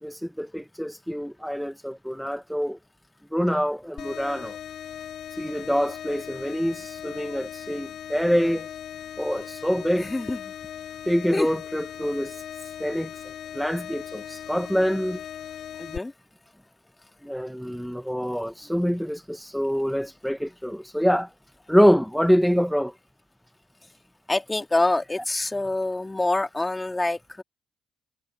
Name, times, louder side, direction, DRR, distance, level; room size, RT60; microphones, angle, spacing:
voice 1, 0.0-2.8 3.3-4.6 5.3-8.7 9.2-10.1 11.1-13.2 13.5-15.2 17.2-21.3 21.7-22.9, equal, ahead, 1.0 m, -25 dB
sound 1, 4.0-16.0, left 10 dB, 70° left, 4.4 m, -39 dB
voice 2, 10.0-10.5 11.3-11.5 15.8-16.1 24.3-27.4, left 2 dB, 15° left, 2.7 m, -26 dB
cardioid pair, 90°, 0 cm